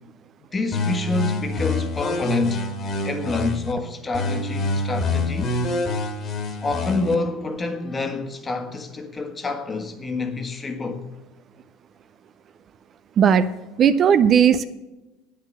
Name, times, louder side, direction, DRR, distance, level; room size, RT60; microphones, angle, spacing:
voice 1, 0.5-2.7 3.0-5.5 6.6-11.1, left 3 dB, 25° left, 1.5 m, -27 dB
sound 1, 0.7-3.7 4.1-7.1, left 2 dB, 40° left, 1.9 m, -26 dB
voice 2, 13.2-13.5 13.8-14.6, right 8 dB, 40° right, 0.6 m, -16 dB
9.4 x 9.2 x 6.4 m
hypercardioid pair, 80°, 0 cm